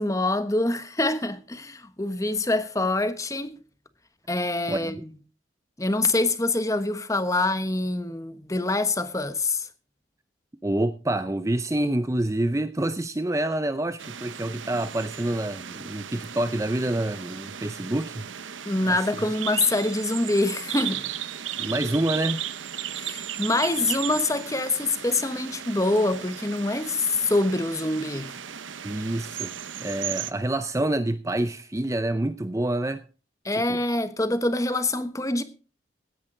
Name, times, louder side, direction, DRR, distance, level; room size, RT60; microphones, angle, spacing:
voice 1, 0.0-3.6 4.3-5.1 5.8-9.7 18.7-21.0 23.0-28.3 33.4-35.4, left 2 dB, 15° left, 1.1 m, -25 dB
voice 2, 4.7-5.0 10.6-18.3 18.8-19.3 21.6-22.5 28.8-29.5 29.8-33.0 33.5-33.8, right 1 dB, 15° right, 0.5 m, -27 dB
sound 1, 14.0-30.3, right 9 dB, 85° right, 0.9 m, -36 dB
16.5 x 10.5 x 3.8 m
head